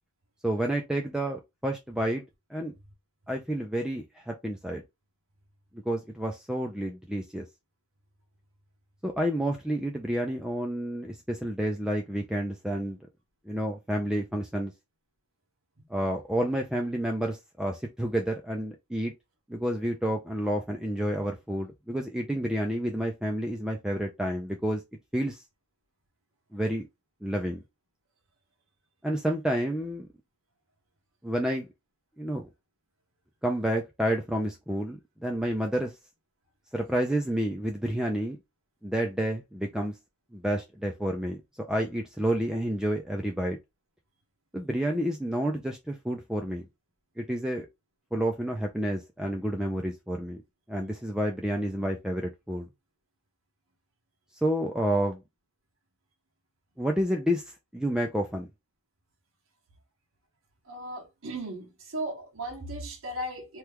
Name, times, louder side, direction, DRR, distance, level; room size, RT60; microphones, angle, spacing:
voice 1, 0.4-2.2 2.5-2.7 3.3-4.8 5.9-7.4 9.0-13.0 13.5-14.7 15.9-19.1 19.5-24.8 25.1-25.4 26.5-26.9 27.2-27.6 29.0-30.1 31.2-31.7 32.2-32.5 33.4-35.9 36.7-38.4 38.8-39.9 40.3-41.4 41.7-43.6 44.5-46.7 47.2-47.7 48.1-50.4 50.7-52.7 54.4-55.2 56.8-57.4 57.7-58.5, right 1 dB, 5° right, 0.3 m, -29 dB
voice 2, 60.7-63.6, right 1 dB, 65° right, 1.0 m, -36 dB
3.0 x 2.3 x 3.4 m
head